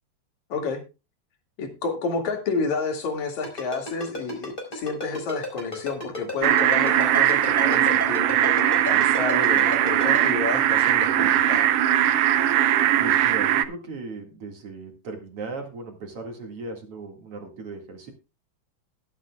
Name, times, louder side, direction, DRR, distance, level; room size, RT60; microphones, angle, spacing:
voice 1, 1.6-11.7, left 4 dB, 65° left, 3 dB, 3.5 m, -30 dB
Ringtone, 3.4-10.2, left 2 dB, 15° left, 4.5 m, -32 dB
sound 1, 6.4-13.6, right 11 dB, 75° right, 1.4 m, -20 dB
voice 2, 13.0-18.1, right 3 dB, 50° right, 3 dB, 2.7 m, -37 dB
21.5 x 8.2 x 2.3 m, 0.29 s
omnidirectional pair, 3.5 m